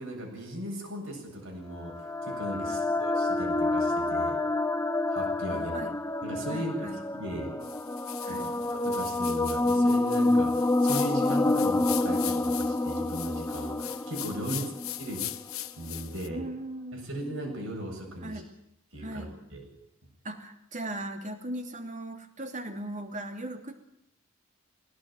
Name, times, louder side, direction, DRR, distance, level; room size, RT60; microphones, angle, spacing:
voice 1, 0.0-1.9 2.2-4.4 5.1-5.8 6.2-7.5 8.2-8.4 8.7-14.7 15.0-15.2 15.8-16.4 16.9-18.4 18.9-19.6, right 1 dB, 75° right, 2 dB, 7.9 m, -37 dB
sound 1, 1.8-15.4, left 2 dB, 15° left, 0.7 m, -28 dB
voice 2, 5.5-5.9 6.5-7.0 8.2-8.5 14.5-14.7 16.3-17.1 18.2-18.5 19.0-19.3 20.2-23.7, right 1 dB, 35° right, 5 dB, 2.9 m, -38 dB
sound 2, 7.6-16.3, left 14 dB, 80° left, 1.3 m, -40 dB
20.5 x 17.5 x 9.2 m, 0.78 s
head